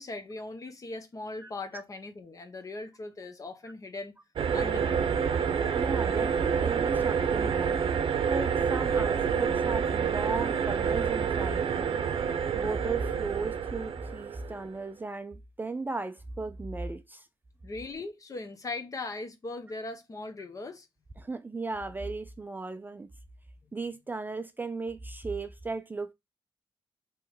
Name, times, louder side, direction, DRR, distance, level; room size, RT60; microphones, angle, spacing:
voice 1, 0.0-4.2 4.5-5.0 17.6-20.9, left 2 dB, 35° left, 0.9 m, -39 dB
sound 1, 4.4-14.7, right 7 dB, 65° right, 0.6 m, -28 dB
voice 2, 5.8-7.8 8.3-12.0 12.6-17.3 21.2-23.1 23.7-26.1, right 3 dB, 20° right, 0.3 m, -36 dB
3.5 x 3.1 x 4.6 m
wide cardioid pair, 125°, 9 cm